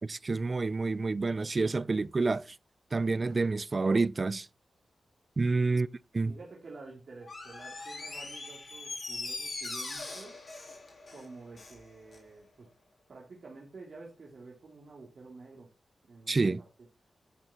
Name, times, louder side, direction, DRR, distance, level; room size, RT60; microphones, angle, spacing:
voice 1, 0.0-2.6 2.9-4.5 5.4-5.9 6.1-6.4 16.3-16.6, right 3 dB, 45° right, 0.4 m, -28 dB
voice 2, 6.2-10.4 11.1-12.7 13.1-15.7 16.0-16.5, right 3 dB, 65° right, 2.6 m, -49 dB
Door, 7.2-11.8 12.1-12.2, left 3 dB, 55° left, 3.7 m, -41 dB
10.0 x 6.0 x 4.2 m
supercardioid pair, 40°, 0 cm